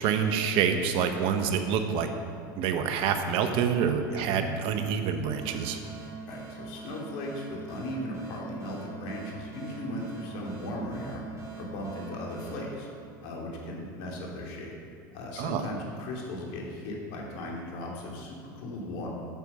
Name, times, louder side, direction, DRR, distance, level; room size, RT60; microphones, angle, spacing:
voice 1, 0.0-2.1 2.5-5.8 15.4-15.6, right 7 dB, 55° right, 7 dB, 1.0 m, -27 dB
sound 1, 5.4-13.7, right 4 dB, 30° right, 2.9 m, -44 dB
voice 2, 6.3-11.2 11.6-12.9 13.2-14.7 15.1-19.1, left 1 dB, 60° left, -1 dB, 2.7 m, -37 dB
9.1 x 6.3 x 7.2 m, 2.4 s
hypercardioid pair, 100°, 11 cm